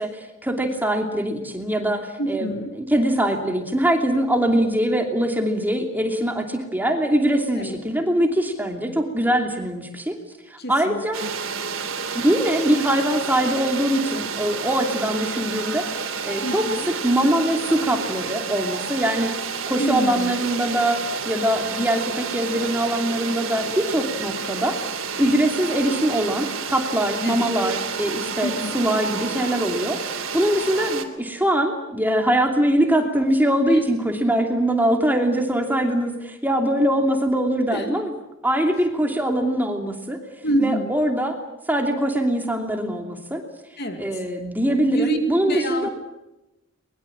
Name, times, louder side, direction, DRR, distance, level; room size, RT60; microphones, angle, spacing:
voice 1, 0.0-2.5 2.8-10.1 10.5-11.2 12.1-16.7 17.0-19.3 19.7-21.0 21.2-24.8 25.2-38.1 38.4-40.2 40.6-41.3 41.7-43.4 44.0-45.9, right 1 dB, 10° right, 4 dB, 2.8 m, -22 dB
voice 2, 2.2-2.7 7.6-7.8 10.6-11.3 16.4-16.9 19.8-20.4 27.2-27.5 28.4-28.9 33.7-33.8 37.7-37.9 38.7-38.8 40.4-40.9 43.8-44.0 44.8-45.2 45.4-45.9, right 1 dB, 55° left, 6 dB, 2.4 m, -27 dB
sound 1, 11.1-31.0, right 5 dB, 85° right, 3.1 m, -30 dB
23.0 x 22.0 x 8.7 m, 0.94 s
head